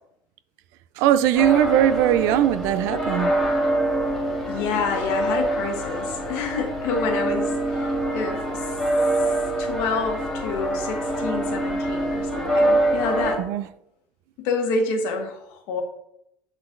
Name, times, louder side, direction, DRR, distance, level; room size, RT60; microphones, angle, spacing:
voice 1, 1.0-3.4 13.4-13.6, right 12 dB, 70° right, 0.4 m, -20 dB
sound 1, 1.3-13.4, right 1 dB, 5° left, 1.7 m, -25 dB
voice 2, 4.5-8.6 9.6-13.4 14.4-15.8, left 4 dB, 70° left, 1.5 m, -28 dB
7.9 x 4.0 x 3.8 m
cardioid pair, 155°, 5 cm